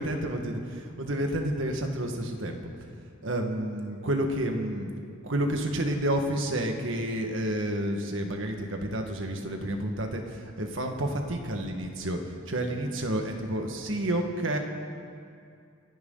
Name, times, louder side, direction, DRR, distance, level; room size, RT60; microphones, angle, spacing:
voice 1, 0.0-2.6 3.2-12.2 12.5-14.6, right 1 dB, 70° right, 3 dB, 1.7 m, -30 dB
30.0 x 10.5 x 4.0 m, 2.4 s
head